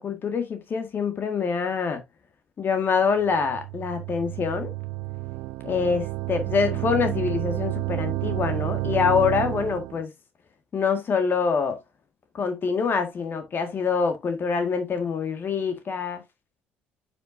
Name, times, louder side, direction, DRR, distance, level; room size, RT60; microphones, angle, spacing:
voice 1, 0.0-2.0 2.6-4.7 5.6-10.1 10.7-11.8 12.3-16.2, left 5 dB, 45° left, 1.7 m, -25 dB
sound 1, 3.2-10.0, right 19 dB, 65° right, 0.4 m, -30 dB
9.8 x 5.6 x 2.6 m
hypercardioid pair, 55°, 5 cm